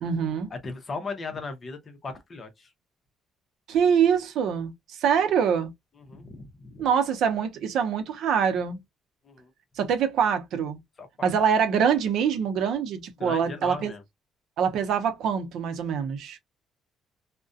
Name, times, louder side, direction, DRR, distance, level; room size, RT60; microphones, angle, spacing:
voice 1, 0.0-0.5 3.7-5.7 6.8-8.8 9.8-10.8 11.2-13.9 14.6-16.4, right 7 dB, 70° right, 0.6 m, -24 dB
voice 2, 0.5-2.7 6.1-6.8 9.2-9.5 11.0-11.3 13.2-14.0, left 3 dB, 30° left, 0.7 m, -37 dB
2.4 x 2.1 x 2.4 m
cardioid pair, 135°, 0 cm